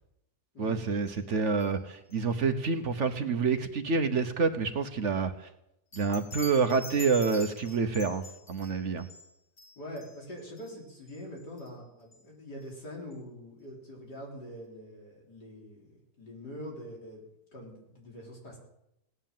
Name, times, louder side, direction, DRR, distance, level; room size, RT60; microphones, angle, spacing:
voice 1, 0.6-5.5 5.9-9.1, right 5 dB, 50° right, 9 dB, 1.2 m, -28 dB
sound 1, 1.1-1.3 1.6-1.8 2.1-2.2 5.9-11.7 12.1-12.3 12.6-12.7 13.1-13.2, left 2 dB, 45° left, 2.4 m, -47 dB
voice 2, 9.8-15.9 16.2-17.2 17.5-18.6, equal, 85° left, -1 dB, 4.6 m, -44 dB
17.5 x 9.9 x 7.4 m, 0.83 s
omnidirectional pair, 1.7 m